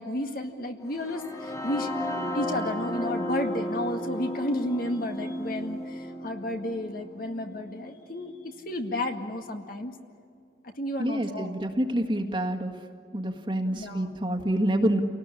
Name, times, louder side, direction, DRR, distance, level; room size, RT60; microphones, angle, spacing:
voice 1, 0.0-1.9 2.3-10.0 10.8-11.6 13.7-14.1, left 1 dB, 50° left, 4 dB, 2.0 m, -32 dB
sound 1, 0.9-8.8, equal, 15° left, 1.3 m, -34 dB
voice 2, 11.0-12.7 13.1-15.0, right 1 dB, 25° right, 2 dB, 1.8 m, -27 dB
29.0 x 18.5 x 9.9 m, 2.4 s
head